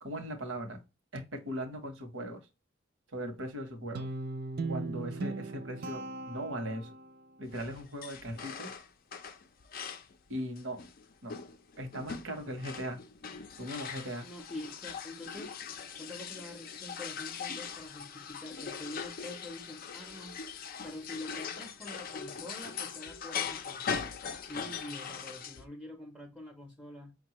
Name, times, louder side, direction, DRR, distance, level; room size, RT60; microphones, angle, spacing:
voice 1, 0.0-0.8 1.1-2.4 3.1-4.1 4.7-6.9 7.4-8.8 10.3-10.8 11.2-11.3 11.8-13.0 13.6-14.3, equal, 70° right, 1.0 m, -39 dB
Guitar, 4.0-7.2, right 3 dB, 50° right, 0.5 m, -38 dB
sound 1, 7.5-10.2 10.6-25.7, left 6 dB, 45° left, 0.4 m, -41 dB
voice 2, 14.2-15.5 16.0-20.4 20.8-23.8 24.4-27.2, left 1 dB, 5° left, 0.6 m, -45 dB
5.2 x 2.2 x 2.9 m
head